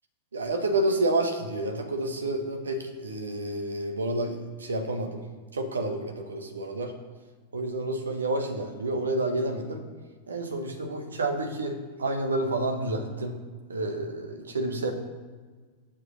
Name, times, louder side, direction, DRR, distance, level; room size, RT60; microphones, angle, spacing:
voice 1, 0.3-5.2 5.5-6.9 7.5-9.8 10.3-13.4 13.7-14.9, right 2 dB, 70° right, 5 dB, 1.4 m, -29 dB
9.9 x 7.4 x 5.4 m, 1.5 s
figure-of-eight pair, 90°, 0 cm